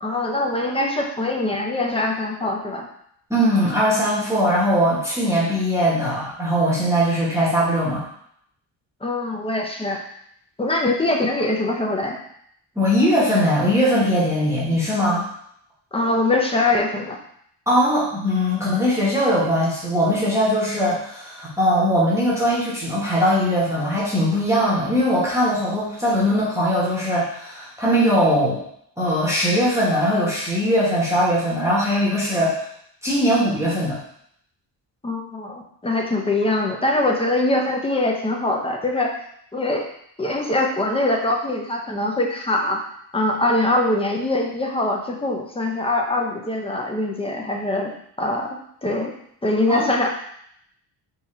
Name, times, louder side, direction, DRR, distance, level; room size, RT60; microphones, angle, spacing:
voice 1, 0.0-2.9 9.0-10.0 10.6-12.2 15.9-17.2 35.0-39.1 39.5-39.9 40.2-42.8 43.1-47.9 48.2-49.1 49.4-50.1, left 2 dB, 15° left, 1 dB, 0.5 m, -23 dB
voice 2, 3.3-8.0 12.8-15.2 17.7-28.6 29.0-32.6 33.0-34.0 49.7-49.9, equal, 5° right, -7 dB, 0.9 m, -20 dB
3.7 x 2.8 x 4.2 m, 0.69 s
cardioid pair, 150°, 44 cm